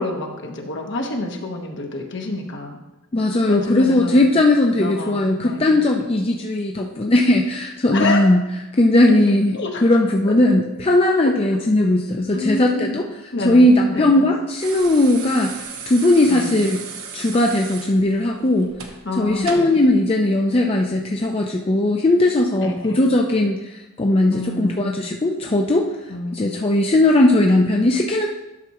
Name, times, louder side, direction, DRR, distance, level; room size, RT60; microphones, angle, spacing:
voice 1, 0.0-2.8 3.5-4.3 4.8-5.7 7.9-8.2 9.0-9.2 9.5-10.0 11.5-11.6 12.3-13.0 13.3-14.2 16.3-16.5 19.0-19.8 22.6-23.1 24.3-24.9 26.1-26.5, left 2 dB, 55° left, 2 dB, 1.1 m, -28 dB
voice 2, 3.1-8.4 8.8-16.8 17.1-18.8 19.2-25.9 26.3-28.3, left 1 dB, 25° left, 1 dB, 0.5 m, -18 dB
sound 1, 14.6-19.8 21.1-21.3, right 5 dB, 75° right, 0.9 m, -35 dB
11.5 x 5.9 x 3.0 m, 1.0 s
head